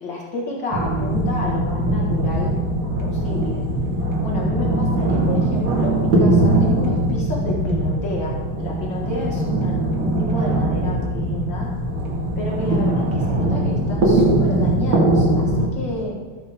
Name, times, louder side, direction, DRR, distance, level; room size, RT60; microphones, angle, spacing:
voice 1, 0.0-2.6 3.0-3.6 4.2-11.7 12.4-16.2, left 2 dB, 65° left, -2 dB, 2.3 m, -30 dB
sound 1, 0.7-15.7, right 1 dB, 65° right, 2.5 m, -21 dB
14.0 x 6.7 x 5.0 m, 1.5 s
omnidirectional pair, 2.3 m